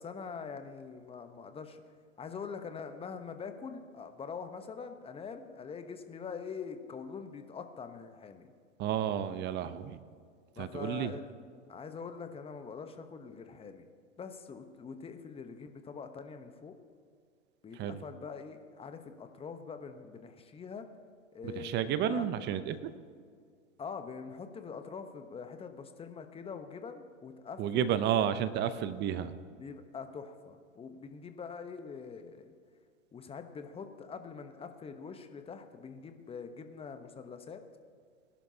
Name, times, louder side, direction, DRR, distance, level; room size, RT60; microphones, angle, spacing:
voice 1, 0.0-1.8 2.2-8.5 10.6-11.3 11.7-13.8 14.2-16.8 17.6-20.9 21.3-22.3 23.8-27.9 29.5-32.5 33.1-37.6, left 5 dB, 15° left, 8 dB, 0.9 m, -44 dB
voice 2, 8.8-10.0 10.6-11.1 17.8-18.0 21.4-22.9 27.6-29.3, right 9 dB, 25° right, 13 dB, 0.7 m, -31 dB
20.0 x 11.5 x 2.8 m, 2.1 s
hypercardioid pair, 110°, 39 cm